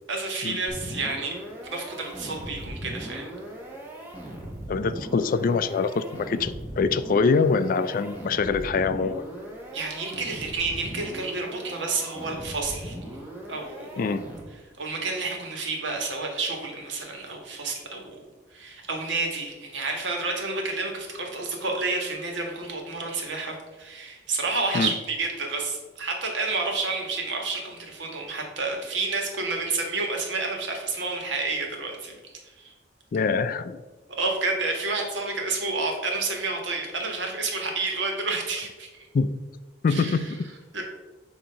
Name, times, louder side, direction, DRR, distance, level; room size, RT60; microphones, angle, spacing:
voice 1, 0.1-1.4 1.7-3.3 9.7-13.0 13.5-14.0 14.8-18.2 18.5-32.1 32.4-32.7 34.2-39.1 39.9-40.2 40.7-40.8, right 3 dB, 75° right, 1 dB, 1.4 m, -30 dB
sound 1, 0.7-14.7, right 1 dB, 10° right, 1.3 m, -39 dB
voice 2, 4.7-9.2 14.0-14.2 24.7-24.9 33.1-33.8 39.1-39.3 39.8-40.3, left 4 dB, 45° left, 12 dB, 0.3 m, -24 dB
7.7 x 2.9 x 5.5 m, 1.2 s
head